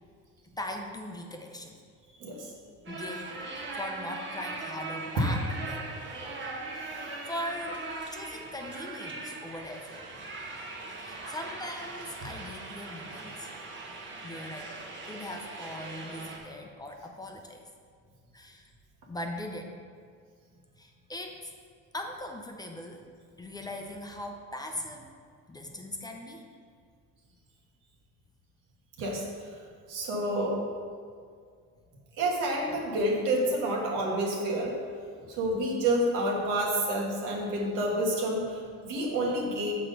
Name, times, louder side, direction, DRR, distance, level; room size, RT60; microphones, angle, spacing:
voice 1, 0.6-1.8 2.9-3.4 3.7-5.4 5.7-5.9 6.9-7.8 8.1-10.5 10.8-13.5 14.2-14.7 15.0-17.6 18.3-18.7 19.1-19.7 20.8-21.5 21.9-23.1 23.4-25.1 25.5-26.5 35.2-35.4, left 1 dB, 10° left, 2 dB, 0.6 m, -40 dB
voice 2, 2.2-2.5 5.2-5.3 5.7-6.4 15.8-15.9 29.0-29.2 29.9-30.6 32.2-34.7 35.3-39.7, right 1 dB, 90° right, -2 dB, 1.8 m, -29 dB
sound 1, 2.9-16.4, right 3 dB, 40° right, 1.2 m, -40 dB
5.9 x 4.7 x 6.6 m, 2.1 s
cardioid pair, 130°, 31 cm